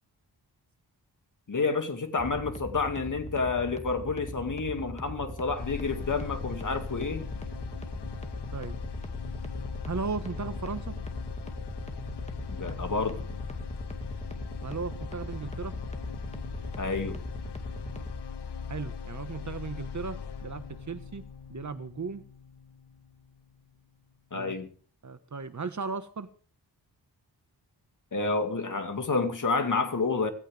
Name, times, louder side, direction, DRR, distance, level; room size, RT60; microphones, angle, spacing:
voice 1, 1.5-7.3 12.5-13.2 16.8-17.2 24.3-24.7 28.1-30.3, left 4 dB, 50° left, 2.3 m, -29 dB
sound 1, 2.2-18.1, equal, 15° left, 2.1 m, -40 dB
sound 2, 5.5-23.5, left 6 dB, 75° left, 1.3 m, -40 dB
voice 2, 9.8-10.9 14.6-15.7 18.7-21.2 21.5-22.2 24.3-24.5 25.0-26.3, right 5 dB, 45° right, 1.4 m, -36 dB
17.5 x 16.0 x 3.5 m
wide cardioid pair, 90°, 41 cm